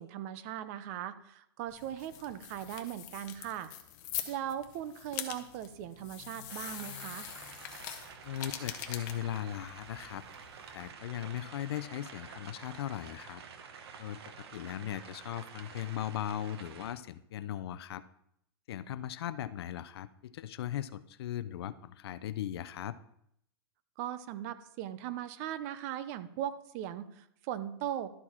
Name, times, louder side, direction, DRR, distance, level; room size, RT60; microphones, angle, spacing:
voice 1, 0.0-3.7 4.3-7.3 24.0-28.1, right 11 dB, 35° right, 13 dB, 0.5 m, -39 dB
sound 1, 1.7-10.9, left 11 dB, 45° left, 0.9 m, -44 dB
sound 2, 6.5-16.9, right 6 dB, 75° right, 1.2 m, -49 dB
voice 2, 8.2-10.2 10.7-13.4 14.0-18.0 18.7-23.0, left 11 dB, 70° left, 15 dB, 0.5 m, -38 dB
12.0 x 4.6 x 4.3 m, 0.74 s
supercardioid pair, 160°, 14 cm